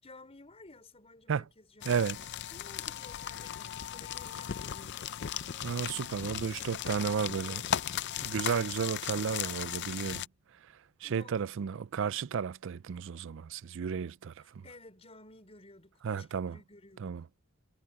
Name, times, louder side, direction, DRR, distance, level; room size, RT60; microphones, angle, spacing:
voice 1, 0.0-2.1 2.5-5.1 6.9-7.8 11.0-11.4 14.6-17.2, left 2 dB, 30° left, 4.9 m, -54 dB
sound 1, 1.8-10.3, left 10 dB, 50° left, 0.5 m, -37 dB
voice 2, 1.8-2.2 5.6-7.6 8.2-10.3 10.5-14.6 16.0-16.6 17.0-17.2, right 6 dB, 60° right, 0.4 m, -33 dB
head